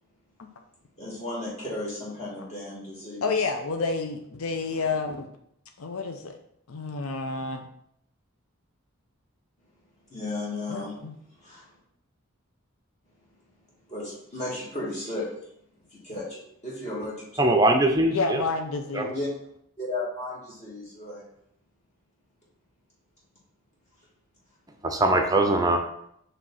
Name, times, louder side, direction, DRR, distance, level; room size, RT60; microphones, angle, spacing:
voice 1, 1.0-3.5 10.1-10.9 11.4-11.7 13.9-15.3 15.9-17.5 19.1-19.3 19.8-21.3, left 2 dB, 30° left, 1.5 m, -34 dB
voice 2, 3.2-5.3 5.8-6.4 6.7-7.7 10.7-11.1 18.1-19.2, left 4 dB, 80° left, 0.6 m, -29 dB
voice 3, 17.4-18.4 18.9-19.1 24.8-25.8, right 2 dB, 15° right, 0.5 m, -21 dB
5.1 x 3.3 x 5.6 m
head